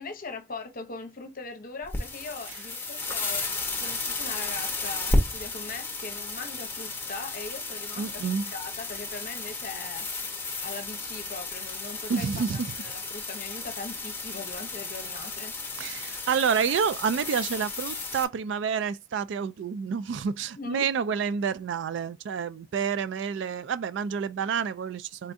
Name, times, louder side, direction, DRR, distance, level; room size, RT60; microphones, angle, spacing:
voice 1, 0.0-3.5 3.8-10.3 10.6-12.3 12.7-15.5 20.6-20.9, left 3 dB, 50° left, 0.8 m, -40 dB
sound 1, 1.8-18.2, left 2 dB, 10° left, 1.0 m, -33 dB
voice 2, 8.0-8.5 12.1-12.7 15.8-25.3, right 6 dB, 65° right, 0.3 m, -29 dB
4.3 x 3.5 x 2.6 m
head